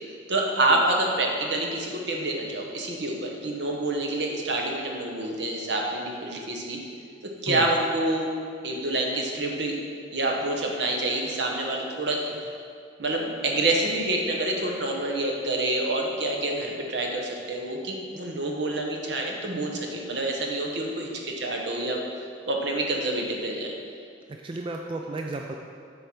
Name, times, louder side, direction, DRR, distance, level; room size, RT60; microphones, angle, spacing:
voice 1, 0.3-6.8 7.4-8.3 8.6-9.8 10.1-12.3 13.0-22.0 22.5-23.7, right 2 dB, 70° right, 0 dB, 1.1 m, -27 dB
voice 2, 24.3-25.5, right 2 dB, 30° right, 2 dB, 0.4 m, -33 dB
8.0 x 4.6 x 5.9 m, 2.3 s
head